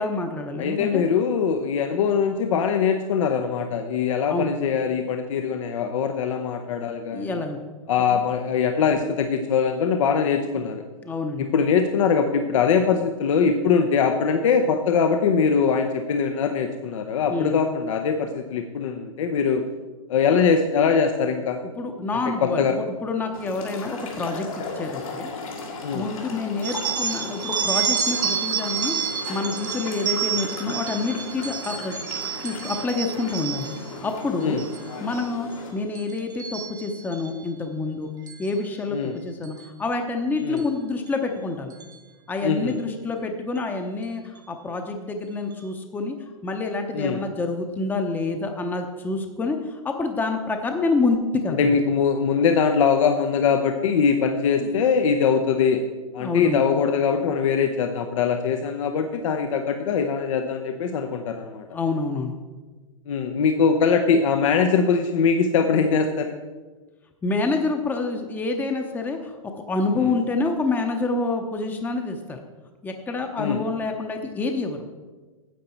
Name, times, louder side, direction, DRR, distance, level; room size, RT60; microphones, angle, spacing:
voice 1, 0.0-1.0 4.3-4.5 7.1-7.6 8.1-8.2 11.0-11.5 17.3-17.6 21.8-25.3 25.9-32.0 32.4-33.7 34.0-34.6 35.0-38.1 38.4-41.7 42.3-46.2 46.4-51.8 54.6-54.8 56.2-56.6 61.7-62.3 67.2-72.4 72.8-74.8, left 3 dB, 10° left, 5 dB, 0.8 m, -27 dB
voice 2, 0.6-7.3 7.9-10.8 11.4-19.6 20.1-21.6 22.4-22.7 25.8-26.1 34.4-34.6 38.9-39.2 40.4-40.6 42.4-42.7 46.9-47.2 51.6-55.8 56.1-61.6 63.1-66.4 70.0-70.1 73.4-73.6, left 6 dB, 70° left, 6 dB, 0.7 m, -22 dB
sound 1, 23.3-35.7, left 3 dB, 85° left, 3.1 m, -36 dB
sound 2, 26.6-33.9 34.4-34.8 35.1-35.6 35.9-37.3 38.3-38.5 39.4-39.6 40.6-40.7 41.1-41.2 41.7-41.9, right 8 dB, 20° right, 1.0 m, -29 dB
9.5 x 7.9 x 4.4 m, 1.3 s
hypercardioid pair, 125°, 17 cm